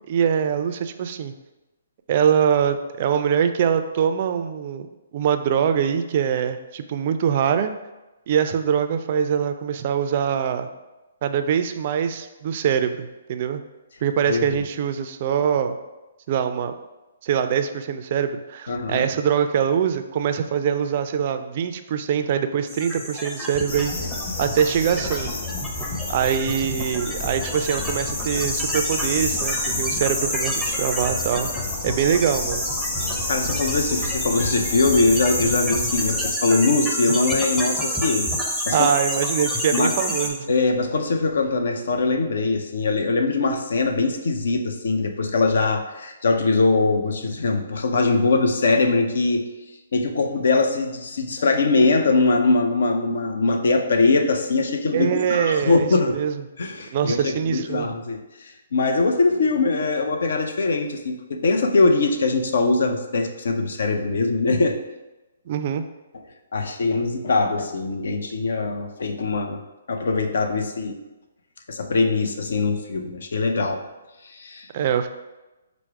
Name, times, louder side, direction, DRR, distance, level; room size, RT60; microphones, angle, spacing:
voice 1, 0.1-1.3 2.1-4.9 5.1-7.7 8.3-10.7 11.2-13.6 14.0-15.8 16.3-16.7 17.2-23.9 24.4-25.3 26.1-31.5 31.8-32.6 38.7-40.5 54.9-56.4 56.9-57.9 65.5-65.8 74.7-75.1, right 8 dB, 45° right, 8 dB, 0.3 m, -23 dB
voice 2, 18.7-19.1 33.3-38.3 38.6-38.9 39.7-40.0 40.5-49.5 49.9-56.2 56.6-64.8 66.5-69.6 69.9-71.0 71.7-73.8 74.2-74.7, left 3 dB, 70° left, 6 dB, 0.5 m, -22 dB
sound 1, 22.7-40.3, equal, 10° left, 0.6 m, -28 dB
sound 2, 23.7-36.3, left 3 dB, 40° left, 1.0 m, -32 dB
4.5 x 2.0 x 4.6 m, 1.1 s
hypercardioid pair, 140°, 0 cm